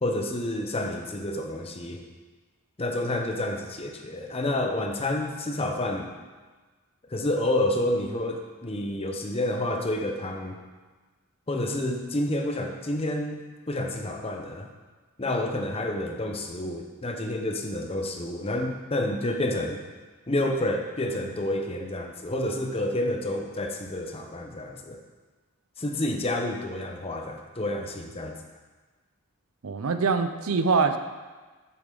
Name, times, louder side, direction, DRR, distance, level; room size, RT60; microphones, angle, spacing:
voice 1, 0.0-2.0 2.8-6.2 7.1-10.6 11.5-13.4 13.7-14.7 15.2-19.8 20.3-25.0 25.8-28.4, left 1 dB, 25° left, 3 dB, 0.7 m, -29 dB
voice 2, 29.6-31.0, right 4 dB, 70° right, 9 dB, 0.5 m, -24 dB
8.2 x 6.8 x 3.9 m, 1.3 s
head